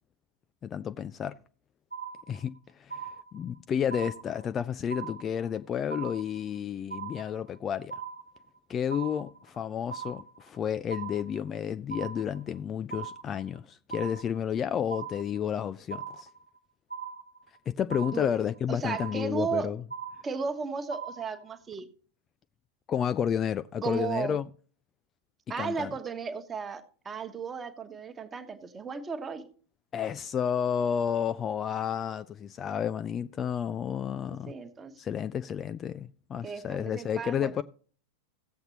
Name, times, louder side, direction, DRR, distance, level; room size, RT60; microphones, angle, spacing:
voice 1, 0.6-1.4 2.3-7.9 8.7-16.3 17.7-19.8 22.9-24.5 25.6-25.9 29.9-34.5 35.0-37.6, left 8 dB, 25° left, 0.3 m, -31 dB
sound 1, 1.9-2.6 2.9-3.6 3.9-4.6 4.9-5.6 5.9-6.6 6.9-7.6 7.9-8.6 8.9-9.6 9.9-10.6 10.9-11.6 11.9-12.6 12.9-13.6 13.9-14.6 14.9-15.6 15.9-16.6 16.9-17.6 17.9-18.6 18.9-19.6 19.9-20.6 20.9-21.6, right 6 dB, 90° right, 1.3 m, -40 dB
voice 2, 18.7-19.7 20.2-21.9 23.8-24.4 25.5-29.5 34.3-34.9 36.4-37.6, right 5 dB, 20° right, 1.2 m, -35 dB
15.5 x 7.8 x 2.9 m
figure-of-eight pair, 90°, 0 cm